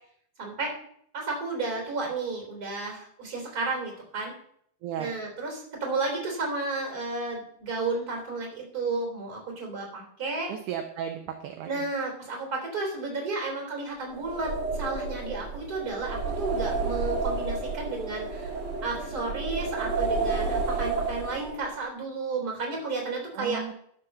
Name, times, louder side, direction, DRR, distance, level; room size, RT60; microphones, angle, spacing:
voice 1, 0.4-0.7 1.1-4.3 5.0-10.5 11.6-18.5 18.8-23.7, right 3 dB, 25° right, 1 dB, 3.5 m, -32 dB
voice 2, 10.5-11.7 23.3-23.7, right 9 dB, 75° right, 5 dB, 2.0 m, -34 dB
sound 1, 14.1-21.7, right 3 dB, 45° right, 2.2 m, -30 dB
11.5 x 6.0 x 6.6 m, 0.66 s
omnidirectional pair, 4.4 m